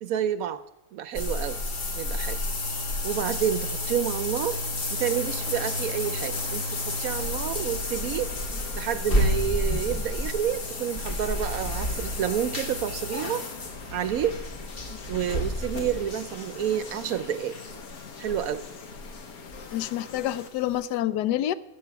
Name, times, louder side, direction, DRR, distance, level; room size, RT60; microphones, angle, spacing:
voice 1, 0.0-0.6 0.9-1.6 1.9-2.4 3.0-4.6 4.9-8.3 8.7-13.4 13.9-14.4 15.1-17.6 18.2-18.6, right 9 dB, 70° right, 12 dB, 1.0 m, -29 dB
sound 1, 1.1-19.8 20.1-20.2 20.7-20.8, left 1 dB, 40° left, 1.3 m, -31 dB
sound 2, 4.9-20.5, left 5 dB, 65° left, 1.4 m, -44 dB
voice 2, 19.7-21.5, left 13 dB, 90° left, 16 dB, 1.2 m, -28 dB
14.0 x 7.5 x 5.8 m, 0.92 s
omnidirectional pair, 1.7 m